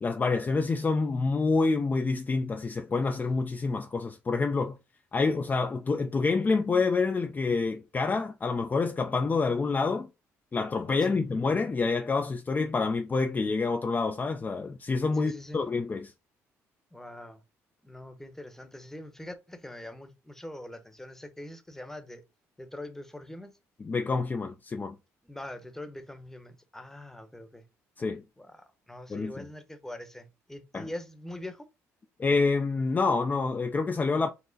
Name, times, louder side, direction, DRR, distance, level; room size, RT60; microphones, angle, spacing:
voice 1, 0.0-4.8 5.1-10.1 10.5-16.1 23.8-25.0 28.0-28.2 29.1-29.5 30.7-30.9 32.2-34.3, left 4 dB, 30° left, 0.5 m, -27 dB
voice 2, 15.2-15.6 16.9-17.4 17.8-22.2 22.6-23.5 25.2-27.6 28.4-31.7, left 1 dB, 5° left, 1.0 m, -43 dB
5.4 x 2.0 x 3.9 m
supercardioid pair, 75°, 6 cm